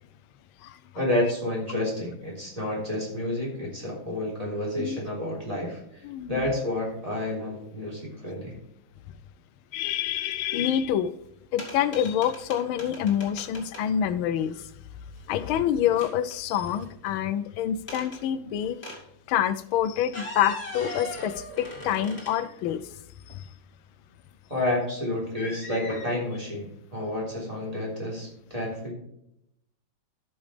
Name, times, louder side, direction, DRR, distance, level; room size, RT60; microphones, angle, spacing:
voice 1, 0.9-8.6 24.5-28.9, left 1 dB, 15° right, -3 dB, 3.7 m, -30 dB
voice 2, 6.0-6.4 9.7-11.1 11.5-14.7 15.3-18.8 19.3-22.9 23.3-23.5, left 10 dB, 85° left, 12 dB, 1.5 m, -27 dB
sound 1, 11.6-13.8 15.2-15.6 15.9-17.2 17.9-18.2 18.8-19.0 20.0-22.7 23.3-23.4 25.4-26.1, left 1 dB, 30° left, 2.6 m, -40 dB
13.5 x 6.4 x 3.3 m, 0.77 s
omnidirectional pair, 2.2 m